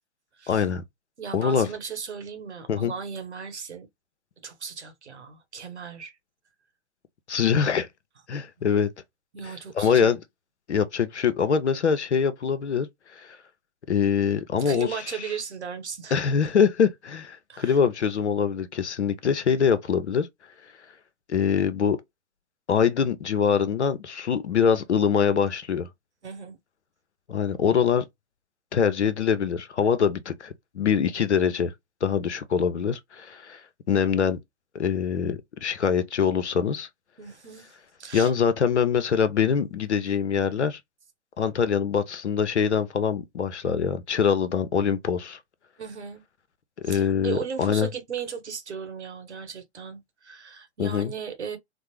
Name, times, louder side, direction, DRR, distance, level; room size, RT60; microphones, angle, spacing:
voice 1, 0.5-0.8 1.3-1.7 2.7-2.9 7.3-7.9 8.3-8.9 9.8-10.2 10.7-12.9 13.1-13.4 13.9-14.9 16.1-20.3 21.3-22.0 22.7-25.9 27.3-28.0 28.7-31.7 32.0-33.6 33.9-34.4 34.7-36.9 38.1-40.8 41.4-45.4 46.8-47.9 50.8-51.1, left 7 dB, 85° left, 0.7 m, -24 dB
voice 2, 1.2-3.9 4.4-6.2 9.3-10.2 14.6-16.3 17.5-17.8 26.2-26.6 37.2-37.7 38.0-38.3 45.8-46.2 46.8-51.6, right 6 dB, 85° right, 1.1 m, -36 dB
3.5 x 2.0 x 3.1 m
hypercardioid pair, 120°, 33 cm